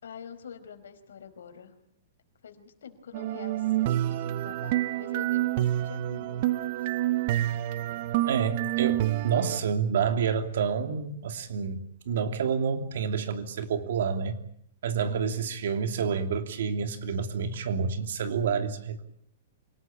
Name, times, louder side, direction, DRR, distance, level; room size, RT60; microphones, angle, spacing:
voice 1, 0.0-1.7 2.4-6.9 15.0-15.5, left 7 dB, 85° left, 8 dB, 5.1 m, -46 dB
sound 1, 3.1-9.6, right 14 dB, 45° right, 1.0 m, -28 dB
voice 2, 8.3-14.4 14.8-19.0, right 6 dB, 70° right, 8 dB, 2.9 m, -29 dB
27.5 x 19.0 x 8.9 m, 0.70 s
hypercardioid pair, 160°, 0 cm